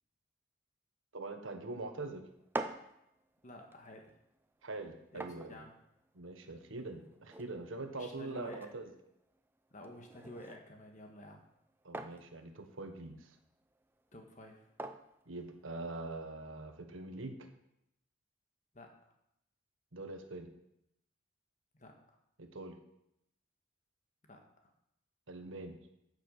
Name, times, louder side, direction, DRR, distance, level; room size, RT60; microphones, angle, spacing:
voice 1, 1.1-2.2 4.6-5.6 6.1-8.9 11.8-13.3 15.3-17.5 19.9-20.5 22.4-22.8 25.3-25.8, right 2 dB, 75° right, 6 dB, 1.3 m, -43 dB
sound 1, 2.3-16.1, right 2 dB, 10° right, 0.5 m, -49 dB
voice 2, 3.4-4.1 5.1-5.7 7.9-8.7 9.7-11.4 14.1-14.7 18.7-19.1 21.7-21.9 24.2-24.7, left 1 dB, 35° left, 3 dB, 1.6 m, -51 dB
9.8 x 6.8 x 6.6 m, 0.80 s
head